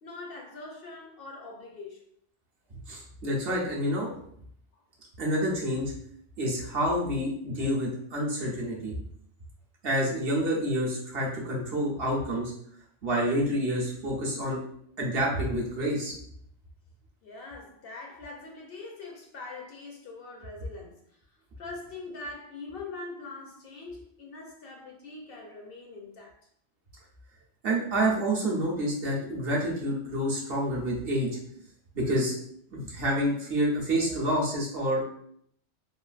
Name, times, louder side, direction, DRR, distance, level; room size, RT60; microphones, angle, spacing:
voice 1, 0.0-2.0 4.7-4.8 7.6-7.7 17.2-21.2 21.6-26.4, left 3 dB, 65° left, 0 dB, 0.7 m, -43 dB
voice 2, 2.9-4.1 5.2-5.9 6.4-8.9 9.8-12.5 13.0-14.6 15.0-16.1 27.6-31.3 31.9-32.3 32.7-35.1, equal, 60° right, -3 dB, 0.9 m, -28 dB
3.1 x 2.4 x 2.4 m, 0.67 s
omnidirectional pair, 1.2 m